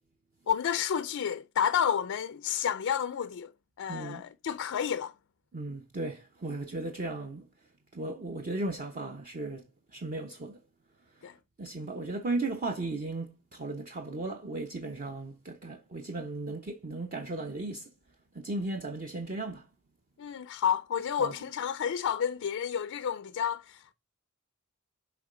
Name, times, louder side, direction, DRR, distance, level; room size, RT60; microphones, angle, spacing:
voice 1, 0.5-3.5 3.8-5.1 11.2-11.4 20.2-23.9, left 8 dB, 60° left, 0.4 m, -30 dB
voice 2, 3.9-4.2 5.5-7.5 7.9-9.6 9.9-10.6 11.6-17.9 18.3-19.7 21.2-21.3, right 2 dB, 40° right, 0.7 m, -36 dB
7.0 x 4.4 x 3.7 m
head